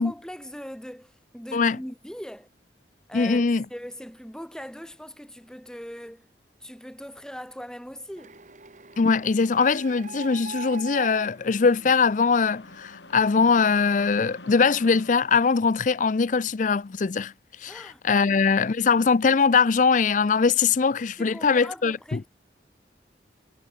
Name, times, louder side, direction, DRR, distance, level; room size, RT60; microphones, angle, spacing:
voice 1, 0.0-2.5 3.1-6.3 6.6-8.4 17.7-18.5 21.2-22.3, equal, 5° left, 5.6 m, -40 dB
voice 2, 3.1-3.6 9.0-17.3 17.6-22.2, left 5 dB, 45° left, 0.5 m, -22 dB
Printer, 8.2-12.7, right 3 dB, 45° right, 2.9 m, -41 dB
sound 1, 10.7-15.7, left 2 dB, 90° left, 6.2 m, -47 dB
head